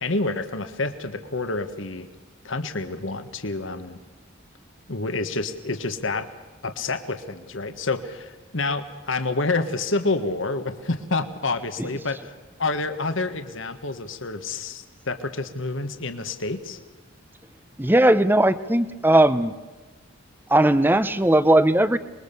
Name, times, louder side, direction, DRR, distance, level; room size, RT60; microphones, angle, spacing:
voice 1, 0.0-2.1 2.4-4.0 4.9-6.3 6.6-12.3 12.6-16.8, left 3 dB, 65° left, 8 dB, 1.5 m, -28 dB
voice 2, 17.8-19.5 20.5-22.0, right 1 dB, 10° right, 14 dB, 0.8 m, -18 dB
26.5 x 21.5 x 6.9 m, 1.3 s
head